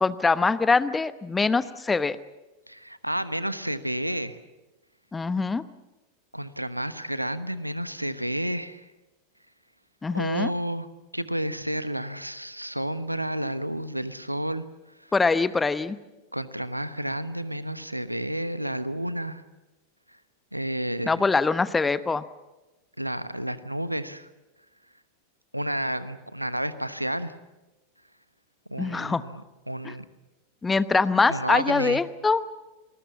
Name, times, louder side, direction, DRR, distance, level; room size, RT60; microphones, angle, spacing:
voice 1, 0.0-2.2 5.1-5.6 10.0-10.5 15.1-16.0 21.0-22.2 28.8-29.2 29.8-29.9 30.6-32.4, left 4 dB, 10° left, 14 dB, 1.0 m, -23 dB
voice 2, 2.7-4.4 6.3-8.8 10.1-10.9 11.1-14.6 16.3-19.4 20.5-21.3 23.0-24.3 25.5-27.3 28.7-29.4 29.7-30.0 31.3-32.0, right 1 dB, 90° right, 14 dB, 1.1 m, -31 dB
28.5 x 21.0 x 7.2 m, 1.1 s
figure-of-eight pair, 90°, 0 cm